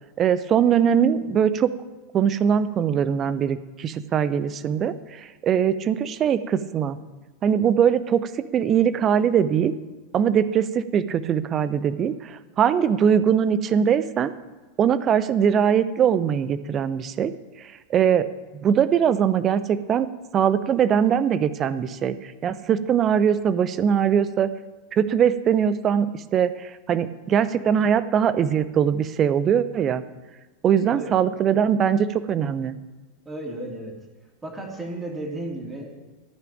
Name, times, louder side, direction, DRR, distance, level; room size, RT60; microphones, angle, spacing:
voice 1, 0.2-1.7 2.1-7.0 7.4-9.7 10.1-14.3 14.8-17.3 17.9-18.3 18.6-20.1 20.3-24.5 24.9-30.0 30.6-32.8, right 8 dB, 30° right, 15 dB, 0.7 m, -21 dB
voice 2, 33.2-34.0 34.4-36.1, right 1 dB, 15° right, 0 dB, 2.9 m, -34 dB
14.0 x 5.9 x 8.8 m, 1.2 s
figure-of-eight pair, 90°, 0 cm